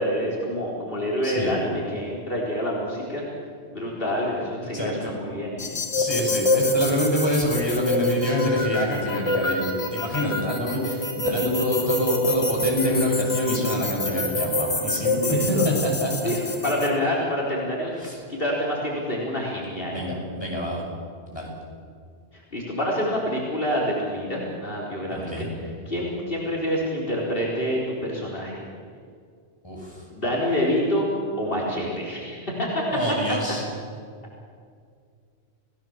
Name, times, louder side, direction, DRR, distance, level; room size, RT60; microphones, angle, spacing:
voice 1, 0.0-3.2 3.7-5.7 15.2-15.7 16.2-18.0 18.3-20.0 22.3-25.5 25.9-28.6 30.1-31.1 31.4-32.8, equal, 60° left, -4 dB, 4.4 m, -27 dB
voice 2, 1.2-1.6 4.7-5.1 6.0-16.3 18.0-18.1 19.8-20.8 21.3-21.5 25.1-25.5 29.6-30.0 32.9-33.6, left 1 dB, 25° left, -2 dB, 6.5 m, -26 dB
sound 1, 5.6-16.9, left 1 dB, 75° left, 3.3 m, -26 dB
29.0 x 18.0 x 7.3 m, 2.2 s
omnidirectional pair, 1.1 m